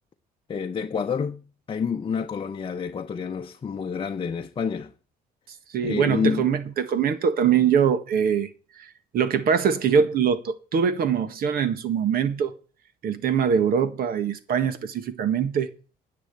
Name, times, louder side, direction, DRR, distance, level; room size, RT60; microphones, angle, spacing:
voice 1, 0.5-4.9 5.8-6.5, left 6 dB, 30° left, 0.8 m, -28 dB
voice 2, 5.7-8.5 8.8-8.9 9.1-12.5 13.0-15.7, right 7 dB, 60° right, 1.6 m, -23 dB
10.5 x 7.6 x 8.9 m
cardioid pair, 110°, 17 cm